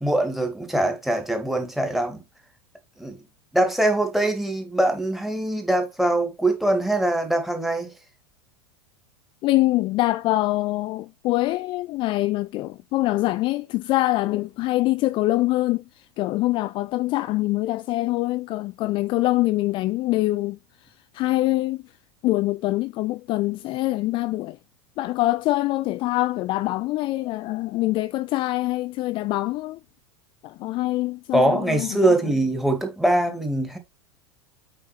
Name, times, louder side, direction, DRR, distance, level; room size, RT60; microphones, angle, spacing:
voice 1, 0.0-2.2 3.0-3.2 3.5-7.9 31.3-33.8, right 1 dB, ahead, 2.1 m, -23 dB
voice 2, 9.4-21.8 22.2-24.6 25.0-29.8 30.4-32.3, left 18 dB, 35° left, 0.4 m, -24 dB
8.7 x 5.0 x 3.2 m
figure-of-eight pair, 85°, 15 cm